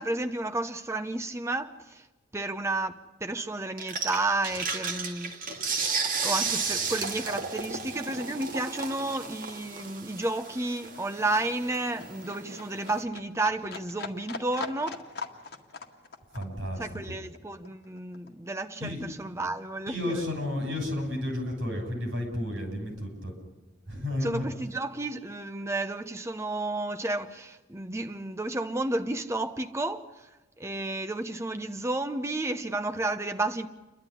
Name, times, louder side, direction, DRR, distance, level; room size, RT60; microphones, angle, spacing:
voice 1, 0.0-2.0 2.3-5.8 6.2-15.0 16.8-20.2 24.2-30.3 30.6-33.7, right 2 dB, 15° right, 0.8 m, -32 dB
sound 1, 3.8-13.0, right 5 dB, 45° right, 2.2 m, -34 dB
Livestock farm animals working animals, 7.6-7.7 8.0-18.9 19.3-20.3 20.6-20.7, left 4 dB, 55° left, 1.9 m, -43 dB
voice 2, 16.3-17.2 18.8-19.0 19.9-23.3 23.9-24.5, left 1 dB, 65° right, 7.5 m, -32 dB
29.0 x 12.0 x 10.0 m
head